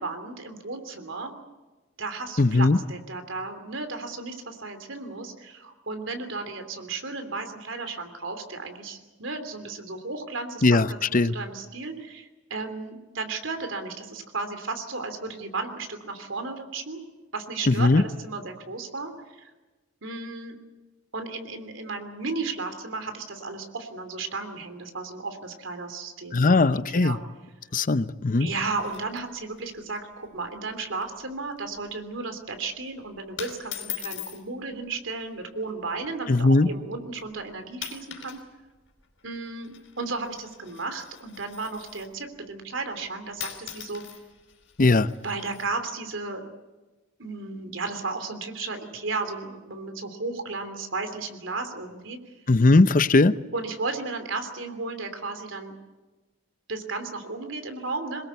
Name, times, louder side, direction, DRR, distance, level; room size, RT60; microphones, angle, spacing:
voice 1, 0.0-1.3 2.0-17.0 17.3-19.1 19.4-19.5 20.0-20.6 21.1-27.2 28.4-38.4 39.2-44.0 45.2-46.5 47.2-52.2 53.5-55.7 56.7-58.2, right 3 dB, 85° right, 7 dB, 3.1 m, -34 dB
voice 2, 2.4-2.8 10.6-11.3 17.7-18.0 26.3-27.2 27.7-28.5 36.3-36.7 44.8-45.1 52.5-53.3, left 3 dB, 45° left, 14 dB, 0.7 m, -19 dB
sound 1, 28.4-29.6 29.9-30.0 30.3-30.6 30.9-31.2 31.6-31.9 32.6-32.9 33.4-34.4 35.4-35.7 36.4-36.5 37.2-37.4 37.7-38.4 38.7-42.2 43.1-43.2 43.4-45.7, left 10 dB, 75° left, 4.5 m, -41 dB
23.5 x 20.5 x 8.2 m, 1.2 s
head